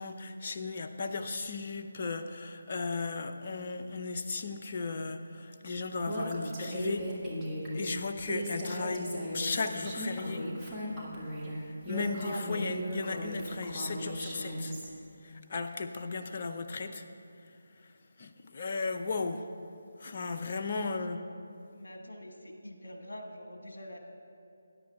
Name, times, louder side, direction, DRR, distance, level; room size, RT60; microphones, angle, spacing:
voice 1, 0.0-7.1 7.7-9.1 9.3-10.5 11.7-14.7 15.2-17.0 17.8-17.9 18.2-19.5 20.0-21.2, left 4 dB, 40° left, 7 dB, 0.6 m, -36 dB
Female speech woman speaking, 6.1-14.9, equal, ahead, 1.5 m, -36 dB
voice 2, 21.7-24.0, left 1 dB, 65° left, 3 dB, 1.4 m, -46 dB
20.0 x 10.5 x 2.3 m, 2.6 s
figure-of-eight pair, 155°, 0 cm